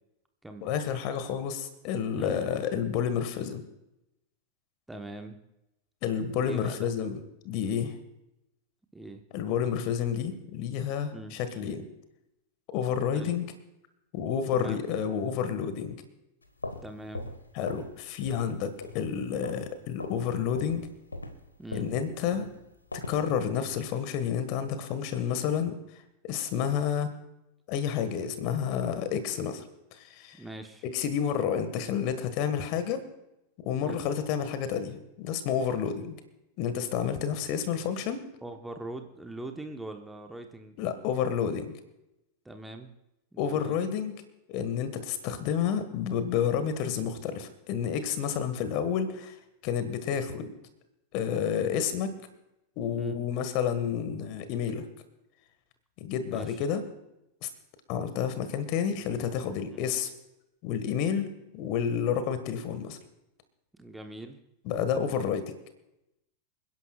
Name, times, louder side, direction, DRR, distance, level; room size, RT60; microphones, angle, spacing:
voice 1, 0.6-3.6 6.0-8.0 9.3-11.8 12.7-13.5 14.1-16.0 17.5-20.9 21.7-22.5 22.9-25.8 26.2-27.1 27.7-29.6 29.9-30.4 30.8-33.0 33.6-36.1 36.6-38.2 40.8-41.7 43.4-44.2 44.5-49.4 49.6-50.5 51.1-52.1 52.8-54.8 56.0-56.8 57.4-57.5 57.9-60.1 60.6-61.3 61.5-63.0 64.6-65.4, left 8 dB, 45° left, 11 dB, 1.6 m, -30 dB
voice 2, 4.9-5.4 6.4-6.9 8.9-9.2 11.1-11.4 13.1-13.3 14.5-14.9 16.8-17.3 21.6-21.9 30.4-30.8 33.8-34.1 38.4-40.8 42.4-42.9 43.3-43.8 52.9-53.2 56.3-56.7 59.7-59.9 63.8-64.4, right 1 dB, 5° right, 4 dB, 1.1 m, -42 dB
sound 1, 16.4-18.0 18.2-18.5 18.8-19.7 20.0-20.2 20.6-23.3, left 2 dB, 80° left, 1.5 m, -40 dB
28.0 x 11.0 x 2.4 m, 0.88 s
figure-of-eight pair, 90°, 0 cm